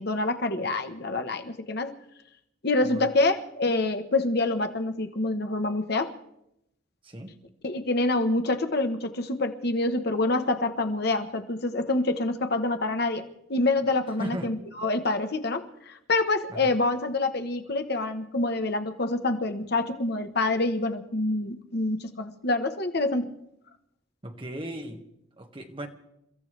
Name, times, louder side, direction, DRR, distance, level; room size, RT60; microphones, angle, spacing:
voice 1, 0.0-1.9 2.6-6.1 7.6-13.2 13.5-23.3, left 2 dB, 55° left, 7 dB, 1.1 m, -26 dB
voice 2, 14.2-14.6 16.5-16.7 24.2-25.0 25.4-25.9, right 1 dB, 25° right, 3 dB, 1.5 m, -36 dB
29.5 x 15.0 x 3.3 m, 0.80 s
head